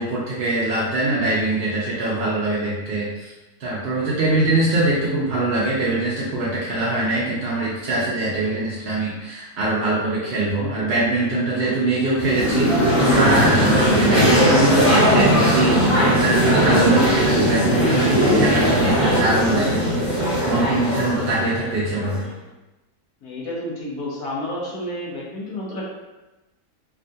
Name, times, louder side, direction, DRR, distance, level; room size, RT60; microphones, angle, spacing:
voice 1, 0.0-3.3 3.6-19.8 20.5-22.2, right 2 dB, 65° right, -7 dB, 0.6 m, -22 dB
sound 1, 12.2-22.2, equal, 35° left, 1.0 m, -18 dB
voice 2, 23.2-25.9, left 1 dB, 75° left, -4 dB, 1.3 m, -30 dB
3.5 x 2.2 x 2.6 m, 1.0 s
omnidirectional pair, 1.6 m